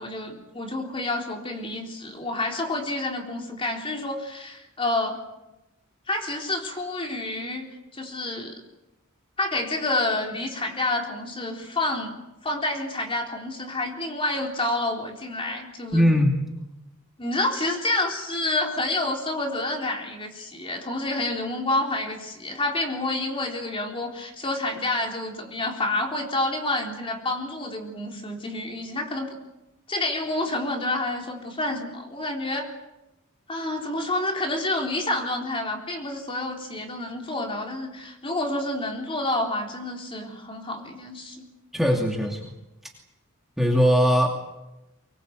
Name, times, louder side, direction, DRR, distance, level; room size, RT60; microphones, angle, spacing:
voice 1, 0.0-5.2 6.1-7.7 7.9-8.6 9.4-16.0 17.2-29.4 29.9-32.7 33.5-41.5, left 2 dB, 25° left, 2 dB, 3.8 m, -28 dB
voice 2, 15.9-16.3 41.7-42.5 43.6-44.3, equal, ahead, 0 dB, 2.7 m, -20 dB
24.5 x 21.5 x 8.1 m, 0.95 s
head